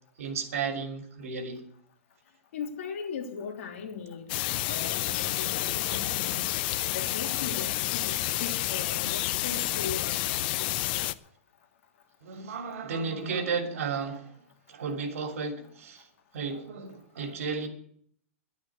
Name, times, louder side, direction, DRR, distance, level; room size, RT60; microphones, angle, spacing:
voice 1, 0.2-1.6 12.2-14.3 14.7-16.1 16.3-17.7, right 5 dB, 75° right, 2.8 m, -33 dB
voice 2, 2.5-4.2 4.7-6.5 6.9-10.8, left 6 dB, 60° left, 3.1 m, -38 dB
sound 1, 4.3-11.1, left 15 dB, 40° left, 0.6 m, -29 dB
11.5 x 8.9 x 9.6 m
supercardioid pair, 160°, 8 cm